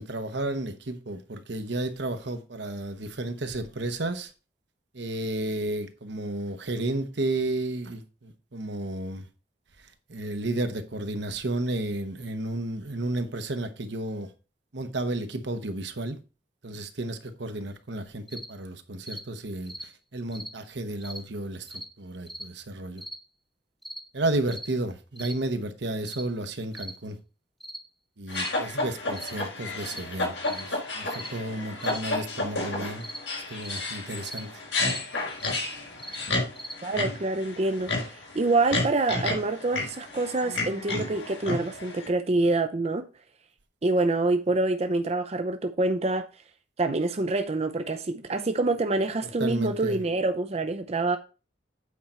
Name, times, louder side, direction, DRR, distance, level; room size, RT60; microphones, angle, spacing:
voice 1, 0.0-4.3 4.9-9.2 10.1-14.3 14.7-16.2 16.6-23.0 24.1-27.2 28.2-33.1 33.5-34.6 49.4-50.0, right 2 dB, 70° right, 1.1 m, -32 dB
sound 1, 18.3-18.5 19.0-19.2 19.7-19.9 20.3-20.5 21.0-21.2 21.7-21.9 22.3-22.5 23.0-23.2 23.8-24.0 24.5-24.7 25.2-25.4 26.0-26.3 26.7-27.0 27.6-27.8 28.3-28.5 29.1-29.4 29.8-30.0 30.4-30.7 31.1-31.3 31.8-32.0 33.0-33.2 33.6-33.8 34.2-34.5 34.8-35.0 35.4-35.6 36.0-36.2 36.6-36.8, right 1 dB, ahead, 1.1 m, -40 dB
sound 2, 28.3-42.1, left 2 dB, 80° left, 5.0 m, -32 dB
voice 2, 36.8-43.0 43.8-46.3 46.8-51.2, right 2 dB, 35° right, 0.5 m, -26 dB
8.4 x 4.4 x 5.5 m
head